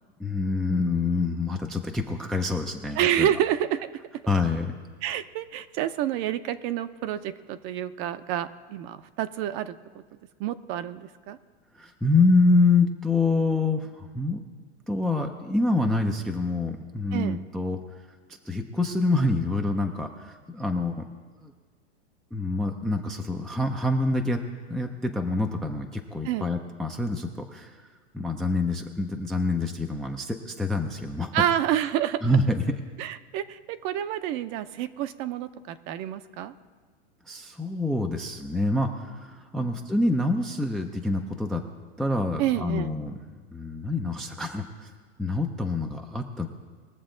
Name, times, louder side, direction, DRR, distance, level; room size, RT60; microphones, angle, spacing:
voice 1, 0.2-3.3 4.3-4.7 11.7-14.4 14.9-17.8 18.4-21.1 21.4-21.5 22.3-24.4 24.7-27.8 28.1-31.3 32.2-32.6 37.3-41.6 42.0-43.2 43.5-44.9 45.2-46.5, left 2 dB, ahead, 3 dB, 0.4 m, -26 dB
voice 2, 3.0-3.9 5.0-10.0 10.4-11.4 17.1-17.4 26.2-26.5 31.3-32.2 33.0-36.5 39.6-39.7 42.4-42.9, right 11 dB, 40° right, 12 dB, 0.6 m, -28 dB
21.0 x 7.0 x 3.8 m, 1.5 s
hypercardioid pair, 125°, 35 cm